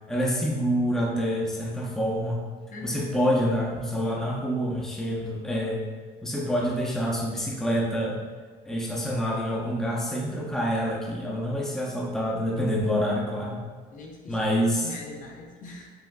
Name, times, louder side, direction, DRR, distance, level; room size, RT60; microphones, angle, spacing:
voice 1, 0.1-2.4 2.8-5.8 6.2-8.2 8.6-13.6 14.3-14.9, equal, 5° left, -3 dB, 0.6 m, -27 dB
voice 2, 2.7-3.1 13.9-14.5 14.8-15.9, left 2 dB, 50° left, 0 dB, 0.7 m, -41 dB
5.5 x 2.5 x 2.2 m, 1.5 s
cardioid pair, 110°, 17 cm